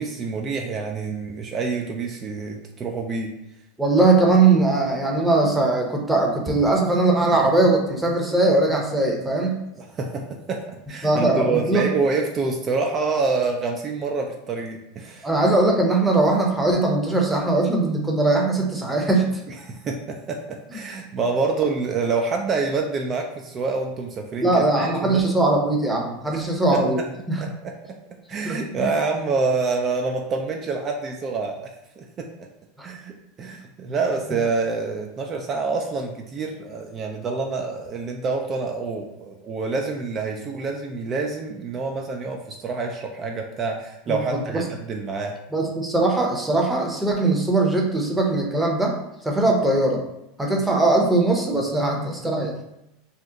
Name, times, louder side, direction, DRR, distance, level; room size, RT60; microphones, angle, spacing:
voice 1, 0.0-3.3 9.8-15.3 19.5-25.3 26.2-26.4 26.7-26.8 27.4-27.7 28.3-31.7 32.0-32.3 32.8-33.1 33.4-45.4, right 4 dB, 35° right, 3 dB, 0.3 m, -27 dB
voice 2, 3.8-9.6 11.0-11.9 15.2-19.3 24.4-27.0 27.3-27.4 28.4-28.9 32.8-32.9 44.1-44.6 45.5-49.0 49.2-50.0 50.4-52.5, right 2 dB, 10° right, 0 dB, 0.7 m, -20 dB
2.8 x 2.0 x 3.5 m, 0.86 s
hypercardioid pair, 105°, 0 cm